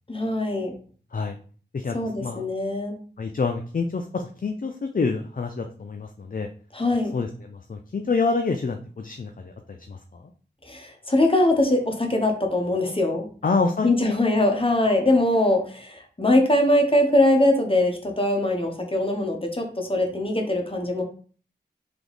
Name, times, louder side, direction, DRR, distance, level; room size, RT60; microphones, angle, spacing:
voice 1, 0.1-0.7 1.9-3.0 6.7-7.1 10.7-13.3 13.8-21.0, left 1 dB, 30° left, 2 dB, 0.9 m, -22 dB
voice 2, 1.7-2.4 3.2-6.5 7.1-10.3 13.4-13.9, left 4 dB, 50° left, 5 dB, 0.4 m, -27 dB
3.4 x 2.9 x 3.9 m, 0.43 s
wide cardioid pair, 55°, 19 cm